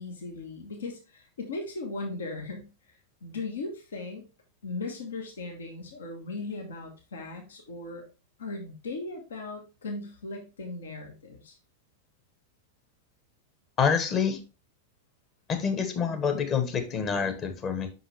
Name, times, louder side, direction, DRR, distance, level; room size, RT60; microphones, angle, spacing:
voice 1, 0.0-2.7 3.2-4.2 4.6-8.0 8.4-11.6, left 3 dB, 65° left, 2 dB, 1.3 m, -37 dB
voice 2, 13.8-14.4 15.5-17.9, left 6 dB, 30° left, 6 dB, 1.2 m, -27 dB
5.8 x 5.4 x 3.3 m, 0.30 s
figure-of-eight pair, 90°, 0 cm